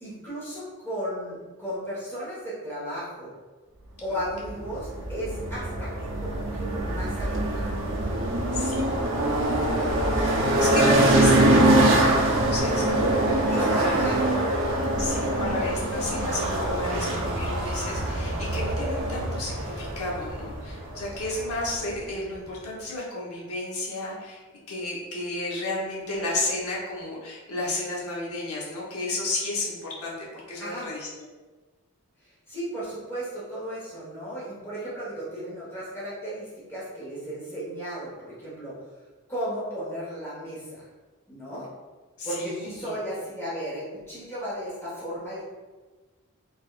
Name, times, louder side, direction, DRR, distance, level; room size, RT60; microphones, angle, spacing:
voice 1, 0.0-3.3 4.0-7.6 13.5-14.2 15.0-15.4 30.6-30.9 32.5-38.7 39.3-40.8 41.3-41.7 42.2-45.4, equal, 10° left, -9 dB, 1.4 m, -35 dB
sound 1, 4.4-21.9, right 1 dB, 60° right, 0.6 m, -24 dB
voice 2, 8.5-9.2 10.1-14.0 15.0-24.4 24.7-31.1 42.2-42.9, left 2 dB, 80° left, -4 dB, 0.9 m, -32 dB
3.9 x 3.5 x 2.5 m, 1.3 s
head